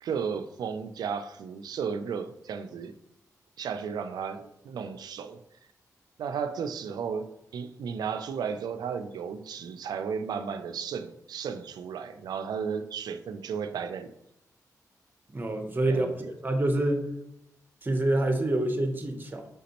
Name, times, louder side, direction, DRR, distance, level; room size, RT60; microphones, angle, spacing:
voice 1, 0.0-2.9 3.6-5.4 6.2-14.1 15.9-16.1, right 6 dB, 85° right, 10 dB, 0.3 m, -34 dB
voice 2, 15.3-17.0 17.8-19.5, right 1 dB, 30° right, 5 dB, 0.8 m, -27 dB
5.0 x 3.5 x 2.9 m, 0.83 s
cardioid pair, 60°, 7 cm